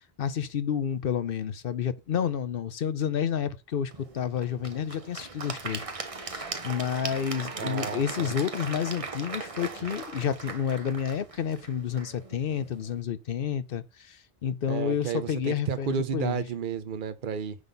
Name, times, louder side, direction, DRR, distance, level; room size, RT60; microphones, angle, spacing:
voice 1, 0.2-5.9 6.1-16.4, left 8 dB, 65° left, 0.9 m, -30 dB
Applause / Crowd, 3.9-13.0, right 3 dB, 35° right, 1.0 m, -39 dB
voice 2, 7.6-8.3 14.7-17.6, right 7 dB, 55° right, 0.9 m, -32 dB
9.7 x 4.1 x 5.3 m
omnidirectional pair, 1.0 m